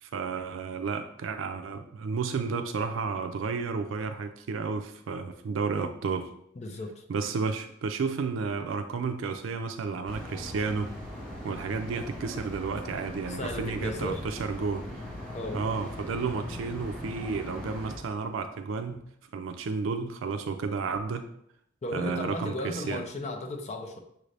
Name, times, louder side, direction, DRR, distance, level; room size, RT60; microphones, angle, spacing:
voice 1, 0.0-6.3 7.1-10.9 11.4-14.8 15.5-19.0 19.3-21.2 21.9-23.0, right 5 dB, 80° right, 7 dB, 0.4 m, -32 dB
voice 2, 6.6-7.0 13.3-14.2 15.3-15.6 21.8-24.0, left 1 dB, 35° left, 5 dB, 0.5 m, -35 dB
sound 1, 10.0-18.0, left 1 dB, 5° left, 1.2 m, -40 dB
6.1 x 2.6 x 3.2 m, 0.72 s
head